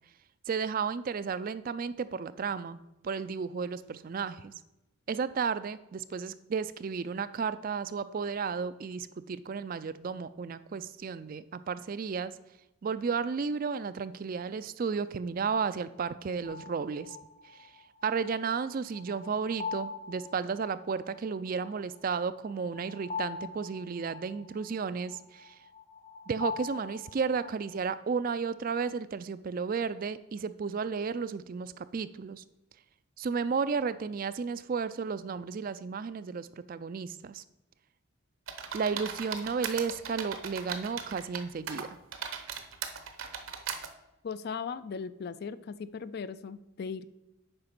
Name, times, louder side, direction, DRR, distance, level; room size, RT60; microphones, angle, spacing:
voice 1, 0.5-2.8 3.0-4.5 5.1-12.3 12.8-17.2 18.0-25.5 26.3-32.4 33.2-37.4 38.7-42.0, right 5 dB, 40° right, 14 dB, 0.3 m, -33 dB
sound 1, 16.4-27.7, left 5 dB, 20° left, 0.8 m, -43 dB
sound 2, 38.5-41.4 41.7-43.9, right 7 dB, 70° right, 0.9 m, -38 dB
voice 2, 44.2-47.0, left 6 dB, 45° left, 15 dB, 0.3 m, -38 dB
8.7 x 5.1 x 5.9 m, 0.95 s
head